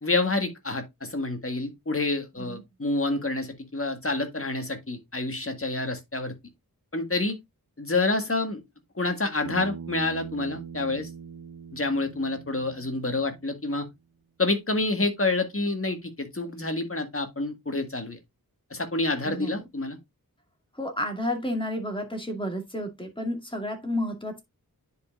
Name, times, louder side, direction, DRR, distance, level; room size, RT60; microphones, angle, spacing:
voice 1, 0.0-6.3 6.9-7.3 7.8-8.6 8.9-11.1 11.7-13.9 14.4-18.2 18.7-20.0, left 2 dB, 35° left, 1.7 m, -28 dB
Bass guitar, 9.4-13.8, right 6 dB, 75° right, 0.7 m, -42 dB
voice 2, 19.2-19.6 20.7-24.4, left 1 dB, 15° left, 2.2 m, -31 dB
10.0 x 5.1 x 2.4 m
wide cardioid pair, 65°, 36 cm